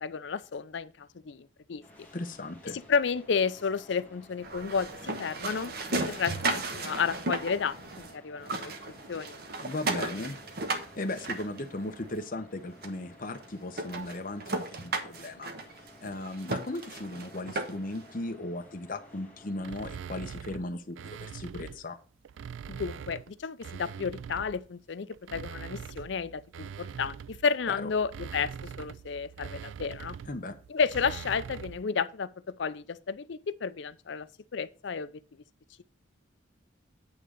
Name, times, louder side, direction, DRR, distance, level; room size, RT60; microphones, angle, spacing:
voice 1, 0.0-1.8 2.7-8.7 9.1-9.3 22.7-30.2 30.7-35.1, left 5 dB, 65° left, 0.5 m, -32 dB
sound 1, 1.8-19.9, left 1 dB, 10° left, 1.7 m, -55 dB
voice 2, 2.1-2.8 9.6-15.5 16.0-22.0 27.7-27.9 30.2-30.5, left 2 dB, 45° left, 0.9 m, -37 dB
sound 2, 4.4-8.1 8.4-12.2 12.8-12.9 13.4-13.5 13.8-18.0, right 2 dB, 50° right, 1.1 m, -35 dB
sound 3, 19.6-21.8 22.2-24.7 25.1-31.9, right 7 dB, 75° right, 0.3 m, -43 dB
8.7 x 3.8 x 6.6 m
head